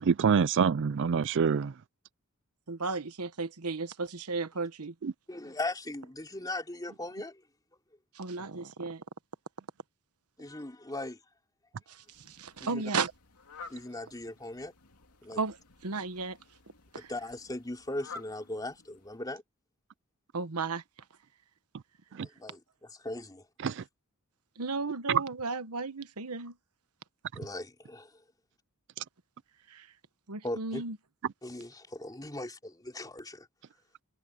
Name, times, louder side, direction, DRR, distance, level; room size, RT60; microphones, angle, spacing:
voice 1, 0.1-1.7 5.0-5.1 23.6-23.8 25.1-25.2, right 6 dB, 55° right, 0.4 m, -25 dB
voice 2, 2.7-4.9 8.2-9.0 12.4-13.1 15.3-15.6 15.8-16.4 16.9-17.1 20.3-20.8 24.6-26.5 29.7-29.9 30.3-31.0, right 4 dB, 85° right, 1.2 m, -34 dB
voice 3, 5.3-7.4 10.4-11.2 12.6-12.8 13.7-14.7 15.2-15.4 16.9-19.4 22.2-23.4 27.3-28.1 30.4-30.8 31.4-33.5, left 2 dB, 15° left, 3.0 m, -39 dB
Fowl, 12.0-19.4, left 4 dB, 80° left, 2.6 m, -52 dB
head